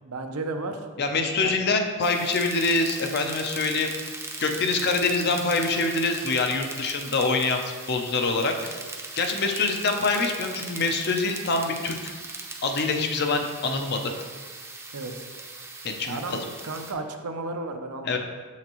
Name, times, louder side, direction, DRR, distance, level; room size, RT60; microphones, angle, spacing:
voice 1, 0.0-0.9 1.4-1.5 14.9-15.3 16.0-16.4 16.6-18.2, right 3 dB, 85° right, 5 dB, 0.7 m, -33 dB
voice 2, 1.0-3.9 4.4-7.6 7.9-8.8 9.2-12.1 12.6-14.1 15.8-16.4 18.0-18.2, left 3 dB, 50° left, 4 dB, 0.7 m, -25 dB
sound 1, 2.0-16.9, right 3 dB, 10° right, 0.6 m, -39 dB
7.1 x 5.7 x 3.0 m, 1.5 s
head